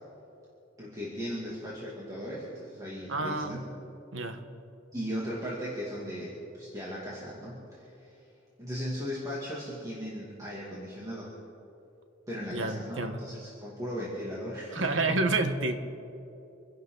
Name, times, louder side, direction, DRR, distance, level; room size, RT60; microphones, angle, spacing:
voice 1, 0.8-3.6 4.9-8.2 8.6-11.3 12.3-15.0, equal, 20° right, -6 dB, 2.5 m, -37 dB
voice 2, 3.1-3.7 4.1-4.4 12.5-13.2 14.7-15.7, right 2 dB, 80° right, 7 dB, 1.3 m, -29 dB
27.5 x 11.0 x 3.9 m, 2.9 s
head